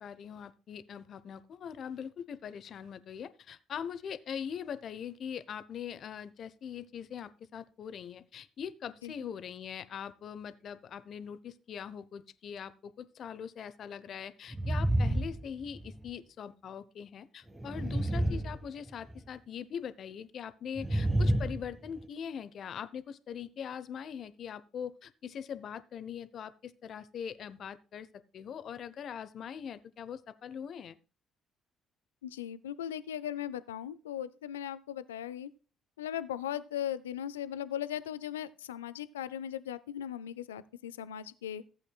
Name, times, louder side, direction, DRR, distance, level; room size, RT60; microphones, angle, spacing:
voice 1, 0.0-28.1 28.3-31.0, left 8 dB, 55° left, 14 dB, 0.8 m, -42 dB
sound 1, 14.5-16.1 17.5-19.2 20.8-22.0, right 1 dB, 15° right, 1.3 m, -30 dB
voice 2, 32.2-35.5 36.0-41.6, left 10 dB, 85° left, 16 dB, 0.4 m, -38 dB
15.0 x 8.3 x 2.3 m, 0.35 s
hypercardioid pair, 50°, 0 cm